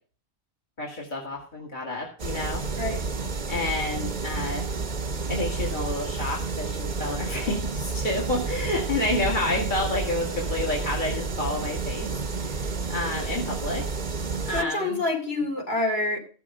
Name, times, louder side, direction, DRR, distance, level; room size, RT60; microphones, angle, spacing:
voice 1, 0.8-2.6 3.5-4.8 5.3-12.1 12.3-13.8 14.5-15.0, left 2 dB, 45° left, -2 dB, 2.2 m, -29 dB
sound 1, 2.2-14.6, right 4 dB, 40° right, 1.0 m, -30 dB
voice 2, 14.5-16.2, left 2 dB, 60° left, 0 dB, 3.2 m, -27 dB
14.0 x 6.9 x 5.0 m, 0.41 s
omnidirectional pair, 1.2 m